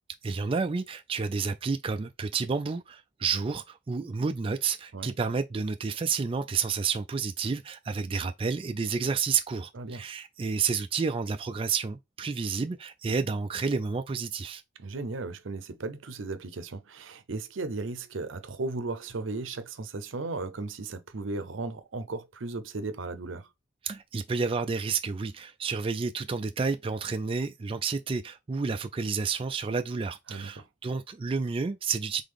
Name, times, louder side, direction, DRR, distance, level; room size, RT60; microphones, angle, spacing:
voice 1, 0.2-14.6 23.8-32.2, right 5 dB, 30° right, 0.3 m, -30 dB
voice 2, 14.8-23.5 30.3-30.7, right 3 dB, 85° right, 0.7 m, -36 dB
3.8 x 3.4 x 3.4 m
head